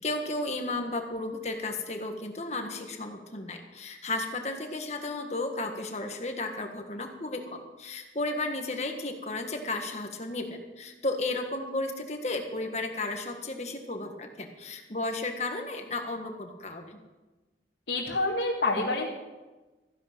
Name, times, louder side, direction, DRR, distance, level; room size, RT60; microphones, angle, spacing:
voice 1, 0.0-17.0, left 2 dB, 40° left, 4 dB, 1.6 m, -34 dB
voice 2, 17.9-19.1, left 2 dB, 80° left, -4 dB, 2.0 m, -27 dB
14.5 x 11.0 x 6.1 m, 1.2 s
head